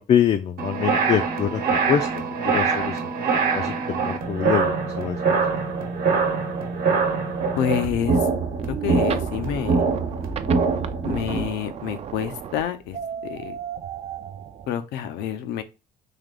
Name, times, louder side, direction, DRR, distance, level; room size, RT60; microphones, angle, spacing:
voice 1, 0.0-1.6 1.9-3.0 3.5-5.4, left 9 dB, 40° left, 0.4 m, -25 dB
sound 1, 0.6-11.5, right 5 dB, 60° right, 1.0 m, -24 dB
voice 2, 7.5-8.2 8.8-9.8 11.0-13.6 14.7-15.6, left 9 dB, 85° left, 0.6 m, -28 dB
sound 2, 8.5-14.7, right 8 dB, 40° right, 0.4 m, -35 dB
3.5 x 2.8 x 3.7 m
cardioid pair, 110°, 17 cm